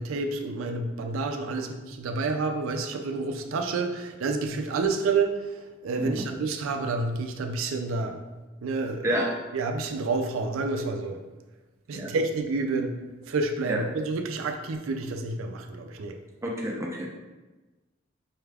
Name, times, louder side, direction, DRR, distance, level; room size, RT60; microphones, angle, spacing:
voice 1, 0.0-8.2 8.6-9.1 9.5-11.2 11.9-13.0 13.3-16.1, right 3 dB, 85° right, 5 dB, 0.4 m, -29 dB
voice 2, 16.4-17.1, right 1 dB, 15° right, -2 dB, 0.5 m, -29 dB
4.7 x 2.3 x 3.3 m, 1.2 s
head